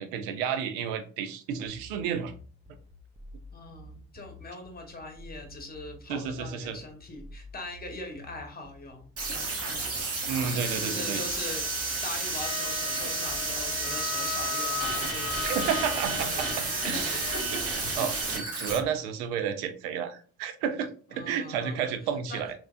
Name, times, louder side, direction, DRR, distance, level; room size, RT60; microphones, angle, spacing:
voice 1, 0.0-2.3 6.1-6.8 10.3-11.2 15.4-17.2 18.0-22.5, right 7 dB, 85° right, 8 dB, 0.5 m, -31 dB
sound 1, 1.7-17.7, left 1 dB, 20° right, 1.0 m, -49 dB
voice 2, 3.5-9.5 10.6-17.9 18.5-18.6 21.1-21.9 22.3-22.5, left 2 dB, 30° left, 4 dB, 1.2 m, -41 dB
sound 2, 9.2-18.8, right 3 dB, 45° right, 1.1 m, -31 dB
Wind instrument woodwind instrument, 12.4-17.5, left 8 dB, 90° left, 0.6 m, -37 dB
3.2 x 3.0 x 2.4 m, 0.40 s
hypercardioid pair, 45°, 33 cm